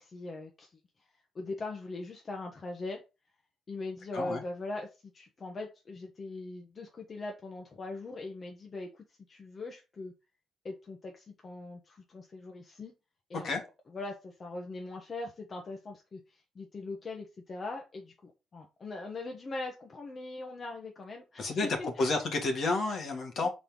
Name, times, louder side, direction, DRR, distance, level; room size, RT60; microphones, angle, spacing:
voice 1, 0.0-3.0 3.7-10.1 10.6-12.9 13.3-22.2 23.4-23.5, left 2 dB, 40° left, 1.1 m, -41 dB
voice 2, 21.4-23.5, left 3 dB, 60° left, 2.0 m, -30 dB
4.5 x 4.2 x 5.3 m
cardioid pair, 90°, 0 cm